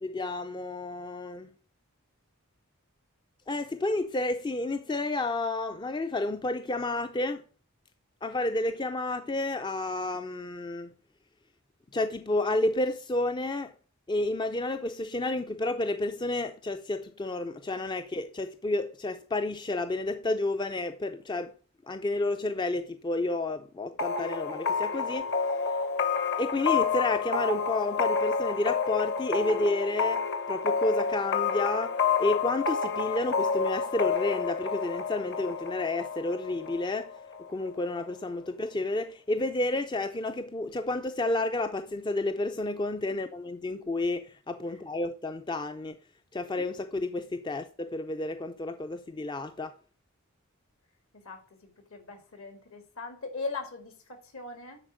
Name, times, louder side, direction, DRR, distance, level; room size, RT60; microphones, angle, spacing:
voice 1, 0.0-1.5 3.5-7.4 8.2-10.9 11.9-13.7 14.1-21.5 21.9-25.3 26.4-37.1 37.5-46.0 46.3-49.7, left 2 dB, 20° left, 0.4 m, -30 dB
sound 1, 24.0-37.5, left 5 dB, 50° left, 1.1 m, -29 dB
voice 2, 51.2-54.8, left 3 dB, 70° left, 2.2 m, -40 dB
9.9 x 4.3 x 6.2 m
head